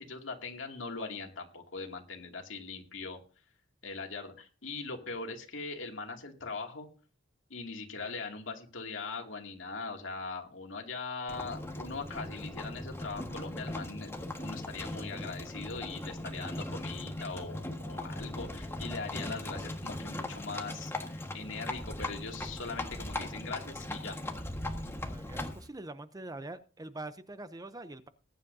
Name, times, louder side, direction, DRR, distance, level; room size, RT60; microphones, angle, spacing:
voice 1, 0.0-3.2 3.8-6.9 7.5-24.2, left 4 dB, 70° left, 2 dB, 2.5 m, -41 dB
Livestock farm animals working animals, 11.3-25.7, left 1 dB, 15° left, 1.5 m, -39 dB
voice 2, 24.8-28.1, right 2 dB, 20° right, 12 dB, 0.7 m, -44 dB
20.0 x 10.5 x 2.7 m, 0.37 s
head